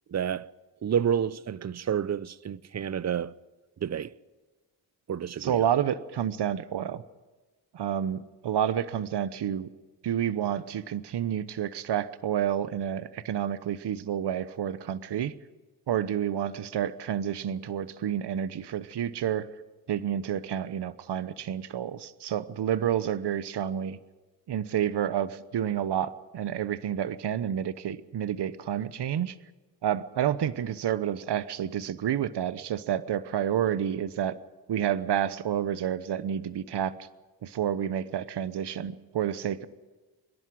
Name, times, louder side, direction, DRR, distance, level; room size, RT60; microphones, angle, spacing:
voice 1, 0.1-0.5 0.8-3.3 3.8-4.1 5.1-5.6, right 8 dB, 35° right, 0.6 m, -29 dB
voice 2, 5.4-7.0 7.7-9.7 10.0-15.3 15.9-19.5 19.9-24.0 24.5-29.4 29.8-34.3 34.7-36.9 37.4-39.7, right 10 dB, 65° right, 1.0 m, -29 dB
25.0 x 11.0 x 9.5 m
cardioid pair, 70°, 44 cm